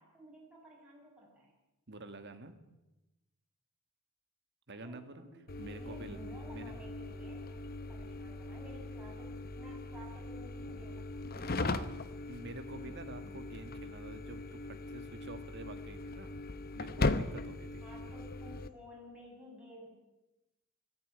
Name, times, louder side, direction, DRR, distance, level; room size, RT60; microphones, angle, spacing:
voice 1, 0.0-1.5 4.8-7.6 7.9-11.0 17.8-19.9, equal, 5° right, -4 dB, 7.3 m, -54 dB
voice 2, 1.9-2.6 4.7-5.3 5.6-6.2 6.5-6.8 11.3-16.3 16.7-17.8, right 2 dB, 55° right, 8 dB, 2.1 m, -48 dB
sound 1, 5.5-18.7, left 2 dB, 45° left, 1.0 m, -39 dB
20.5 x 14.5 x 9.7 m, 0.99 s
head